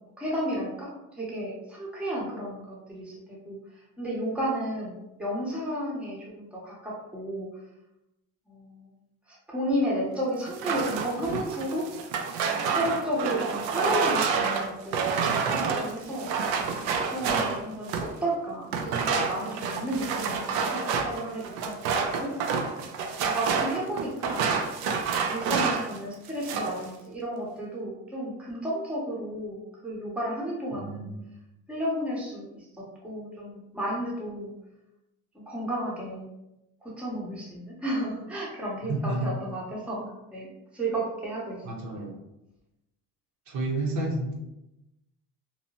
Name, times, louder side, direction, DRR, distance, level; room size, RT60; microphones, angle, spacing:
voice 1, 0.2-7.5 8.5-8.9 9.3-11.9 12.7-16.3 16.9-22.3 23.3-24.4 25.1-31.1 31.7-34.5 35.3-36.3 36.8-41.6, right 1 dB, 5° right, -5 dB, 0.6 m, -33 dB
sound 1, 10.5-18.2 18.7-26.0 26.2-26.8, right 5 dB, 85° right, 0.5 m, -28 dB
voice 2, 30.7-31.2 38.9-39.3 41.6-42.2 43.5-44.3, right 2 dB, 55° right, -1 dB, 0.7 m, -30 dB
2.7 x 2.1 x 2.8 m, 0.92 s
cardioid pair, 120°, 36 cm